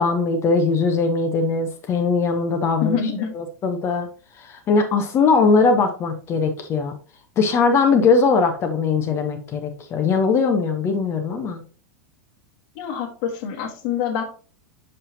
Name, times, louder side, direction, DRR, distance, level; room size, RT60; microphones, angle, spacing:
voice 1, 0.0-3.0 3.3-4.1 4.4-6.9 7.4-11.6, left 4 dB, 30° left, 6 dB, 0.9 m, -20 dB
voice 2, 2.8-3.3 12.7-14.2, left 7 dB, 50° left, 4 dB, 1.4 m, -26 dB
6.6 x 5.7 x 2.7 m, 0.38 s
figure-of-eight pair, 90°, 9 cm